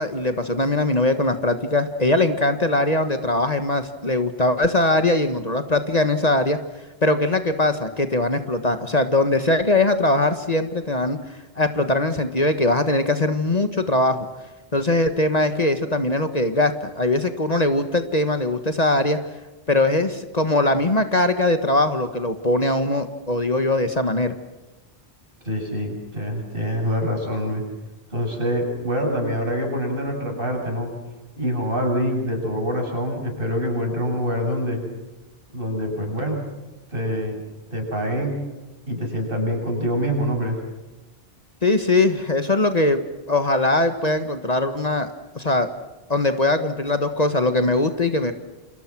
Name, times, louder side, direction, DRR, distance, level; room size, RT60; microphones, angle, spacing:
voice 1, 0.0-6.6 7.0-14.3 14.7-19.2 19.7-24.3 41.6-43.0 43.3-45.7 46.1-48.3, left 2 dB, 40° left, 8 dB, 1.6 m, -21 dB
voice 2, 25.4-27.6 28.1-30.9 31.4-34.8 35.5-36.4 36.9-37.4 37.7-38.3 38.9-40.6, equal, 60° right, 1 dB, 8.0 m, -25 dB
30.0 x 26.5 x 6.2 m, 1.1 s
omnidirectional pair, 1.1 m